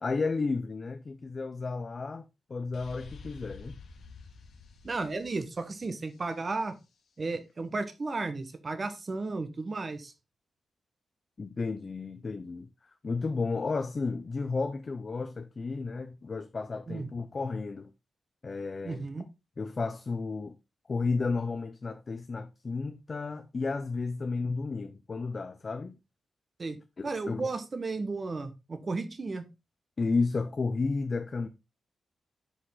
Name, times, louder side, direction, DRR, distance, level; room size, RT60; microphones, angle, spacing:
voice 1, 0.0-2.2 2.5-3.7 11.4-12.7 13.0-17.9 18.4-19.0 19.6-20.6 20.9-26.0 27.0-27.5 30.0-31.5, left 4 dB, 30° left, 0.5 m, -32 dB
sound 1, 2.7-6.5, left 4 dB, 80° left, 2.0 m, -49 dB
voice 2, 4.8-6.7 7.2-10.1 16.9-17.1 18.8-19.2 26.6-26.8 27.0-29.5, right 3 dB, 30° right, 1.2 m, -34 dB
9.9 x 5.1 x 3.8 m
wide cardioid pair, 160°, 0 cm